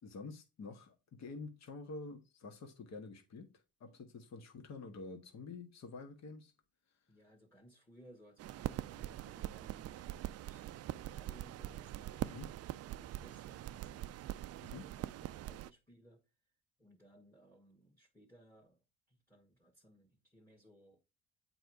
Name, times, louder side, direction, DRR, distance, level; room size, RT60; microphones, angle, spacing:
voice 1, 0.0-3.5 3.8-6.5 12.2-12.5 14.6-14.9, left 3 dB, 50° left, 1.6 m, -48 dB
voice 2, 7.1-12.1 12.9-14.1 14.5-16.2 16.8-18.8 19.1-21.0, equal, 5° left, 1.7 m, -62 dB
sound 1, 8.4-15.7, right 14 dB, 45° right, 0.4 m, -43 dB
7.8 x 4.2 x 4.8 m
supercardioid pair, 70°, 34 cm